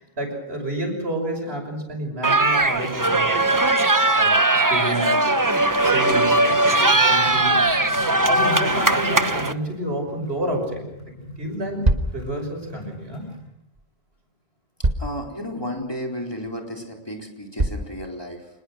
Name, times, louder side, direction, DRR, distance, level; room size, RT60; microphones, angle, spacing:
voice 1, 0.0-3.7 4.2-5.3 5.7-7.8 8.3-10.8 11.4-13.3, right 1 dB, 85° right, 3 dB, 6.5 m, -30 dB
sound 1, 2.2-9.5, right 2 dB, 20° right, 0.9 m, -19 dB
sound 2, 6.3-13.5, equal, 80° left, 7.9 m, -40 dB
sound 3, 11.4-11.5 11.8-12.2 13.8-13.9 14.8-15.2 15.8-15.9 16.4-16.5 17.6-17.9, right 2 dB, 40° right, 1.6 m, -22 dB
voice 2, 15.0-18.5, equal, 25° left, 0 dB, 4.4 m, -33 dB
25.5 x 21.0 x 6.5 m, 0.87 s
omnidirectional pair, 1.0 m